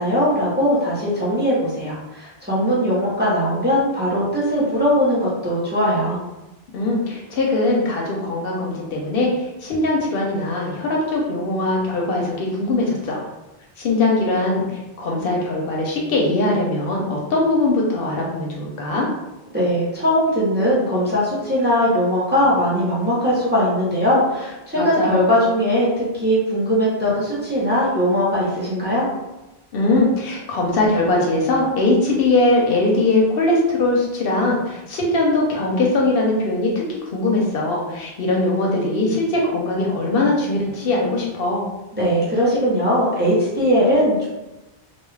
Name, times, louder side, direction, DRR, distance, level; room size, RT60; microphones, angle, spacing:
voice 1, 0.0-6.2 19.5-29.1 41.9-44.3, equal, 10° right, -7 dB, 0.7 m, -20 dB
voice 2, 6.7-13.2 13.8-14.7 15.0-19.1 24.8-25.3 29.7-41.6, left 2 dB, 65° left, -2 dB, 0.7 m, -21 dB
2.3 x 2.2 x 3.1 m, 1.0 s
omnidirectional pair, 1.1 m